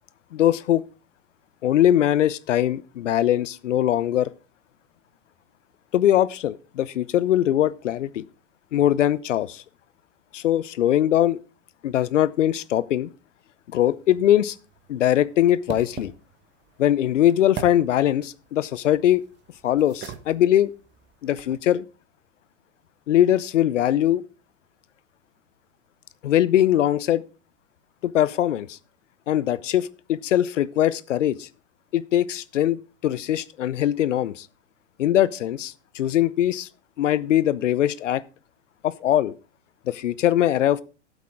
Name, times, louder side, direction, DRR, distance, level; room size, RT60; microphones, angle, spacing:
voice 1, 0.3-0.8 1.6-4.3 5.9-8.2 8.7-9.6 10.3-11.4 11.8-13.1 13.7-14.6 14.9-16.1 16.8-19.2 19.6-20.7 21.2-21.8 23.1-24.2 26.2-27.2 28.0-28.8 29.3-31.5 31.9-34.5 35.0-36.7 37.0-38.2 38.8-39.3 39.9-40.8, left 12 dB, 80° left, 0.7 m, -21 dB
sound 1, 13.9-21.6, right 8 dB, 30° right, 1.4 m, -43 dB
12.5 x 8.3 x 3.6 m
hypercardioid pair, 110°, 36 cm